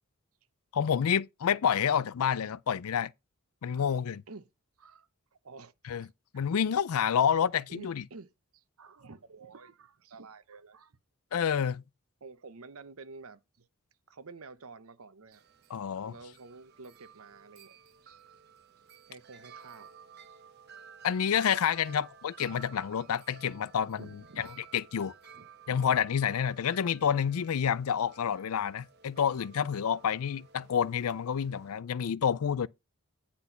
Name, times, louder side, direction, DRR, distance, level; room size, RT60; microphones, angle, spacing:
voice 1, 0.7-3.1 3.6-4.2 5.9-6.1 6.3-8.0 11.3-11.8 15.7-16.1 21.0-24.1 24.4-24.5 24.7-25.1 25.7-32.7, left 8 dB, 80° left, 0.4 m, -28 dB
voice 2, 6.0-6.5 7.7-11.0 11.4-11.5 12.2-13.7 14.1-15.4 16.0-17.8 18.0-18.2 19.1-19.9 20.3-20.4 21.8-22.0 24.0-24.4 25.3-25.5 26.5-26.8, right 4 dB, 75° right, 0.8 m, -50 dB
Wind chime, 15.3-31.8, right 6 dB, 45° right, 0.9 m, -54 dB
9.9 x 4.3 x 5.6 m
head